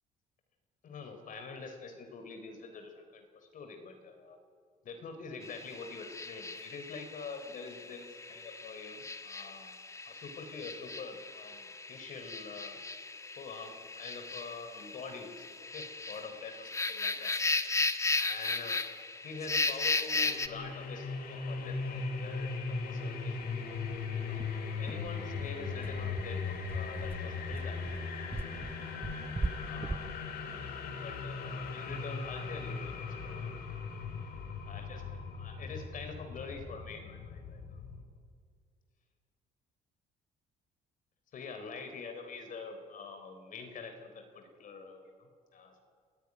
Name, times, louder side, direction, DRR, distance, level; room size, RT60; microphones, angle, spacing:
voice 1, 0.8-4.4 4.8-9.8 10.1-12.8 13.4-17.3 18.1-18.8 19.2-23.4 24.3-24.4 24.6-27.8 29.6-30.1 30.9-33.5 34.6-37.8 41.3-45.8, left 4 dB, 50° left, 6 dB, 3.7 m, -46 dB
sound 1, 5.4-20.5, left 3 dB, 15° left, 1.4 m, -36 dB
sound 2, 20.1-38.0, left 4 dB, 65° left, 4.4 m, -38 dB
sound 3, 21.5-21.6 21.9-22.0 22.3-22.5 22.9-23.0 23.4-31.8, right 3 dB, 15° right, 0.7 m, -41 dB
29.0 x 18.0 x 9.7 m, 2.1 s
cardioid pair, 110°, 17 cm